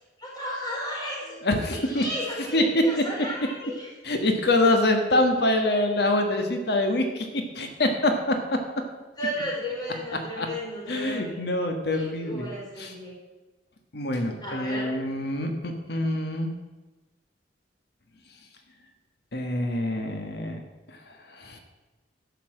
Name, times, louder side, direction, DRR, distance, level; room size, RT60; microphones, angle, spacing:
voice 1, 0.2-1.4 1.7-3.9 9.1-11.4 11.9-13.1 14.4-14.9, equal, 20° left, -4 dB, 4.3 m, -34 dB
voice 2, 1.4-2.0 2.5-2.6 4.0-7.3 7.5-8.3 10.4-10.5 10.9-12.5 12.8-12.9 13.9-16.5 19.3-20.6 21.4-21.6, left 2 dB, 65° left, 5 dB, 1.4 m, -25 dB
12.0 x 5.9 x 7.7 m, 1.2 s
head